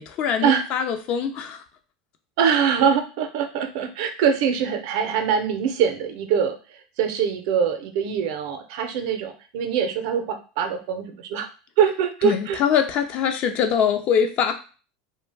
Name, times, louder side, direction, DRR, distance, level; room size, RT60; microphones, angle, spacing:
voice 1, 0.0-1.6 12.2-14.5, left 8 dB, 50° left, 7 dB, 0.5 m, -23 dB
voice 2, 2.4-11.5 11.8-12.6, right 7 dB, 65° right, 7 dB, 0.5 m, -23 dB
2.4 x 2.1 x 3.3 m, 0.36 s
supercardioid pair, 110°, 3 cm